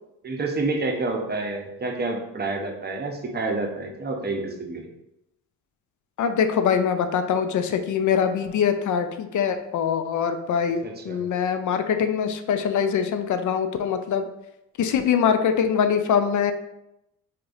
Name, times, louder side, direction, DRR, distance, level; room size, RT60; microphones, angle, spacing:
voice 1, 0.2-4.9 10.8-11.2, right 3 dB, 25° right, 2 dB, 0.8 m, -28 dB
voice 2, 6.2-14.2 14.8-16.5, left 7 dB, 45° left, 8 dB, 0.5 m, -23 dB
4.6 x 2.9 x 2.5 m, 0.87 s
hypercardioid pair, 50°, 42 cm